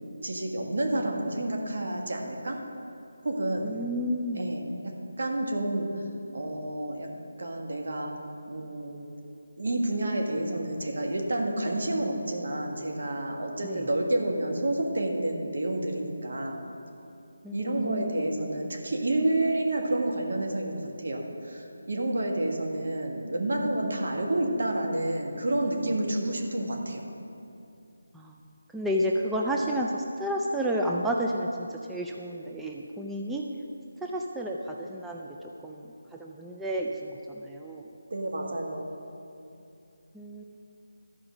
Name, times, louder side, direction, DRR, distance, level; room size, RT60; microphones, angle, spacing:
voice 1, 0.2-2.6 3.2-3.7 4.3-4.9 5.2-5.9 6.3-7.1 7.4-8.1 8.5-9.0 9.6-16.6 17.5-27.0 38.1-38.9, right 1 dB, 65° right, 1 dB, 1.5 m, -29 dB
voice 2, 3.6-4.4 13.6-13.9 17.4-18.3 28.1-28.4 28.7-33.5 34.0-35.4 35.6-37.9 40.1-40.4, equal, 5° right, -1 dB, 0.3 m, -31 dB
12.5 x 4.9 x 6.1 m, 2.7 s
figure-of-eight pair, 170°, 0 cm